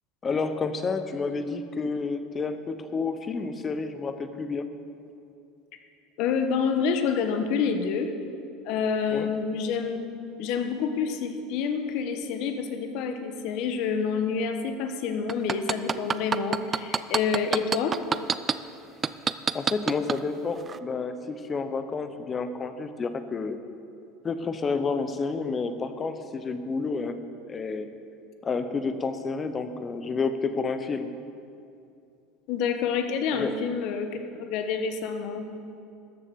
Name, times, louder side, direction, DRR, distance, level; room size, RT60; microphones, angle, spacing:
voice 1, 0.2-4.6 9.1-9.3 19.5-23.6 24.2-27.2 27.5-27.9 28.4-31.1 33.3-33.6, left 4 dB, 25° left, 10 dB, 0.8 m, -30 dB
voice 2, 6.2-8.1 8.6-10.0 10.4-18.0 32.5-35.5, left 6 dB, 60° left, 7 dB, 1.2 m, -28 dB
sound 1, 15.3-18.5 19.0-20.2 20.7-20.8, right 6 dB, 25° right, 0.4 m, -25 dB
13.5 x 7.4 x 6.9 m, 2.6 s
supercardioid pair, 125°, 0 cm